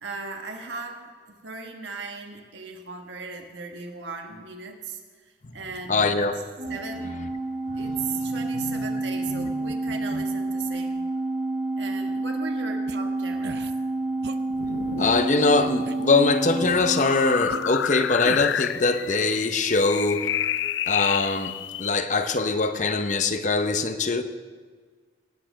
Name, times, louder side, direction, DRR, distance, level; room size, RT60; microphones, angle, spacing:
voice 1, 0.0-6.3 6.7-7.1 7.7-11.0 11.8-13.7, right 4 dB, 80° right, 3 dB, 1.4 m, -37 dB
voice 2, 5.9-6.4 8.5-8.8 9.3-9.5 10.1-10.2 15.0-20.3 20.9-21.5 21.8-24.2, left 3 dB, 40° left, 9 dB, 0.7 m, -23 dB
Organ, 6.6-17.8, right 2 dB, 40° right, 2.3 m, -29 dB
sound 1, 12.9-13.0 13.4-13.7 14.2-14.4 15.0-15.3 15.9-16.0 16.6-16.9 17.5-17.6 18.2-18.6, right 3 dB, 60° right, 0.5 m, -37 dB
sound 2, 14.5-21.9, left 10 dB, 80° left, 0.4 m, -30 dB
18.0 x 6.7 x 6.2 m, 1.5 s
head